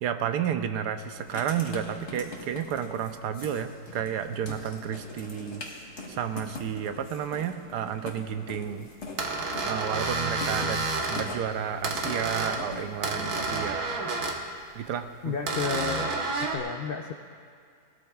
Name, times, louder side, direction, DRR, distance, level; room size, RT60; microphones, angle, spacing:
voice 1, 0.0-5.6 6.1-8.9 9.7-14.1 14.7-15.3, right 8 dB, 85° right, 9 dB, 1.2 m, -31 dB
Writing, 1.1-13.7, left 2 dB, 45° left, 1.7 m, -43 dB
sound 1, 9.2-11.3 11.8-12.6 13.0-14.4 15.5-16.6, right 3 dB, 65° right, 1.6 m, -29 dB
voice 2, 15.2-16.1 16.5-17.1, left 6 dB, 85° left, 3 dB, 0.5 m, -31 dB
19.5 x 13.0 x 2.4 m, 2.2 s
omnidirectional pair, 1.8 m